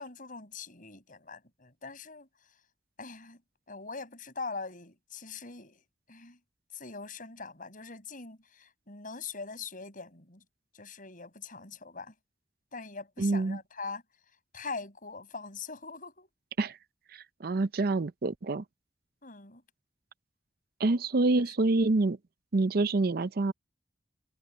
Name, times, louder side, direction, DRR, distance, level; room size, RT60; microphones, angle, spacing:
voice 1, 0.0-2.3 3.0-3.4 3.7-5.8 6.1-6.4 6.7-10.4 10.7-12.1 12.7-14.0 14.5-16.3 19.2-19.6 21.4-21.5, left 4 dB, 50° left, 6.9 m, -42 dB
voice 2, 13.2-13.6 16.6-16.8 17.1-18.6 20.8-22.2 22.5-23.5, right 2 dB, 60° right, 0.6 m, -27 dB
head